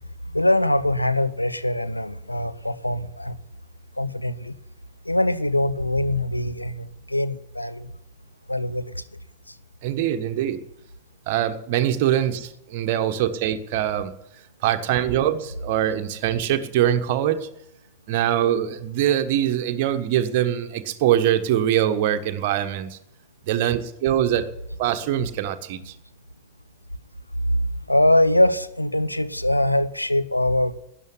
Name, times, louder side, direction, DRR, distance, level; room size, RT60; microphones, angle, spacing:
voice 1, 0.3-3.4 4.0-4.5 5.0-7.9 8.5-9.0 9.5-9.6 27.5-30.8, left 1 dB, 85° left, 12 dB, 0.8 m, -23 dB
voice 2, 9.8-10.6 11.3-14.1 14.6-17.5 18.1-23.0 23.5-24.5 24.8-25.9, right 11 dB, 50° right, 7 dB, 1.3 m, -23 dB
12.5 x 10.5 x 9.8 m, 0.81 s
figure-of-eight pair, 90°, 0 cm